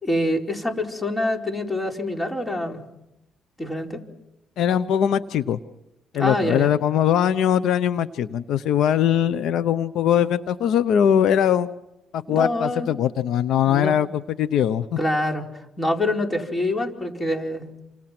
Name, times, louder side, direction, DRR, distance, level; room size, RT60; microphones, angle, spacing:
voice 1, 0.0-2.8 3.6-4.0 6.1-6.7 12.3-12.9 13.7-14.0 15.0-15.5 15.8-17.7, left 1 dB, 20° left, 3 dB, 4.7 m, -25 dB
voice 2, 4.6-5.6 6.1-11.7 12.1-14.1 14.4-14.9, left 9 dB, 80° left, 14 dB, 0.8 m, -21 dB
29.0 x 26.0 x 6.1 m, 0.92 s
cardioid pair, 90°, 0 cm